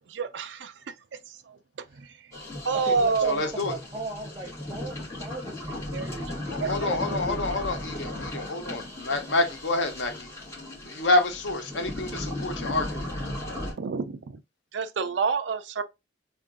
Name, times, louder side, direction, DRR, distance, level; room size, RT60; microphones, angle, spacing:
voice 1, 0.1-0.7 1.5-1.6 2.0-2.1 2.7-3.5 5.9-6.1 6.6-6.8 7.1-7.2 13.8-14.4 14.7-15.8, right 5 dB, 75° right, 0.5 m, -28 dB
sound 1, 2.3-13.7, left 1 dB, 15° left, 2.0 m, -36 dB
voice 2, 2.7-7.7 8.6-8.9 9.2-9.5, right 2 dB, 20° right, 0.8 m, -39 dB
voice 3, 3.3-3.7 6.5-10.3 10.8-13.0, left 2 dB, 90° left, 0.9 m, -28 dB
3.6 x 2.5 x 3.6 m
head